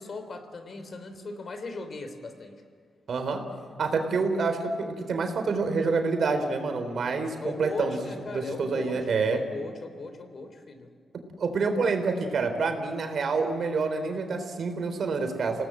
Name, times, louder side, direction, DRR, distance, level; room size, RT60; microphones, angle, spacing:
voice 1, 0.0-2.7 7.4-10.9, left 3 dB, 60° left, 8 dB, 3.6 m, -38 dB
voice 2, 3.1-3.4 3.8-8.0 8.3-9.4 11.4-15.7, right 4 dB, 70° right, 6 dB, 3.9 m, -27 dB
28.0 x 18.5 x 7.6 m, 2.2 s
supercardioid pair, 50°, 0 cm